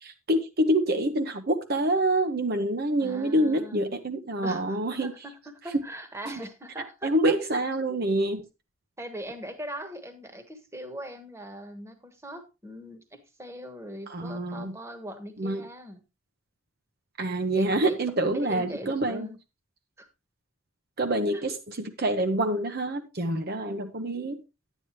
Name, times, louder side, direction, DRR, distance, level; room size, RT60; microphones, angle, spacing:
voice 1, 0.0-5.1 6.3-6.4 7.0-8.4 14.1-14.7 15.4-15.6 17.2-19.3 21.0-24.4, right 1 dB, 50° right, 0.8 m, -26 dB
voice 2, 3.0-3.8 4.4-7.4 9.0-16.0 17.5-18.0 18.3-19.4 20.0-20.1 21.3-21.4, right 1 dB, 15° right, 1.3 m, -40 dB
10.5 x 9.1 x 3.1 m
head